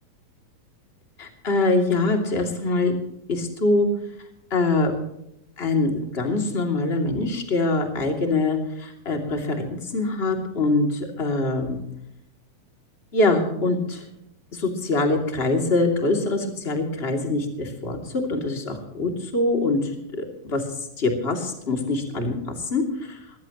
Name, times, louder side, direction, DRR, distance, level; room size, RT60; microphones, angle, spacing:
voice 1, 1.2-2.9 3.3-3.9 4.5-4.9 5.6-11.8 13.1-14.0 14.5-19.9 20.2-20.6 21.0-23.2, left 2 dB, 20° left, 3 dB, 2.4 m, -24 dB
21.5 x 15.5 x 3.1 m, 0.82 s
omnidirectional pair, 4.1 m